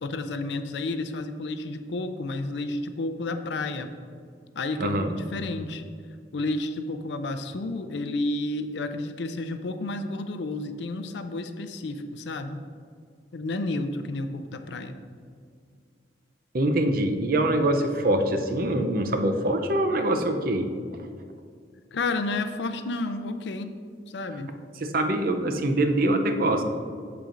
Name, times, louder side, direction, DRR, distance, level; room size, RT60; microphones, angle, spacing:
voice 1, 0.0-3.9 4.5-5.8 6.3-12.6 13.3-15.0 21.9-23.7 24.1-24.5, left 2 dB, 75° left, 9 dB, 0.5 m, -31 dB
voice 2, 4.8-5.1 16.5-20.7 21.0-21.1 24.8-26.6, right 1 dB, 55° right, 6 dB, 0.6 m, -24 dB
7.8 x 6.9 x 2.5 m, 2.1 s
head